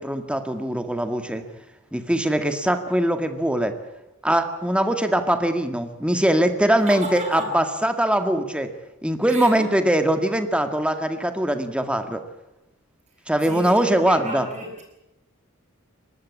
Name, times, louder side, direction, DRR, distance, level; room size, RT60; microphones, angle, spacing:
voice 1, 0.0-1.4 1.9-3.7 4.2-8.7 9.0-12.2 13.3-14.5, right 1 dB, 5° right, 7 dB, 1.8 m, -22 dB
voice 2, 6.7-7.5 9.3-9.5 13.4-14.8, right 1 dB, 35° right, 2 dB, 7.8 m, -33 dB
23.5 x 20.0 x 8.6 m, 0.92 s
head